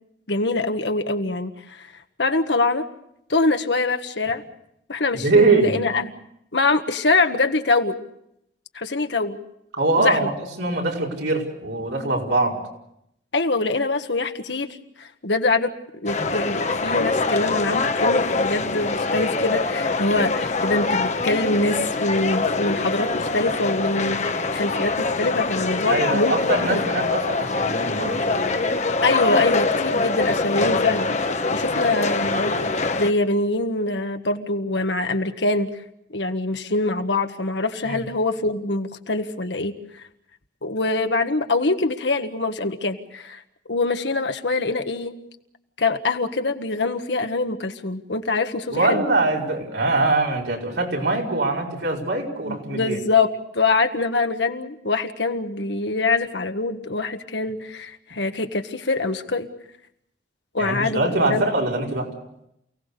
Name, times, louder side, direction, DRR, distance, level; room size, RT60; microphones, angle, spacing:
voice 1, 0.3-1.9 2.2-2.9 3.3-4.4 4.9-6.1 6.5-8.0 8.7-9.4 10.0-10.3 13.3-26.8 29.0-35.7 36.1-39.8 40.6-43.4 43.7-45.1 45.8-49.0 52.5-53.3 53.5-59.5 60.5-61.5, left 3 dB, 80° left, 7 dB, 1.5 m, -24 dB
voice 2, 5.1-5.7 9.7-10.3 10.6-12.6 25.9-28.5 37.8-38.0 48.7-53.0 60.6-62.1, right 2 dB, 90° right, -1 dB, 5.2 m, -22 dB
sound 1, 16.1-33.1, left 3 dB, 40° left, 1.1 m, -24 dB
28.5 x 18.0 x 6.8 m, 0.78 s
head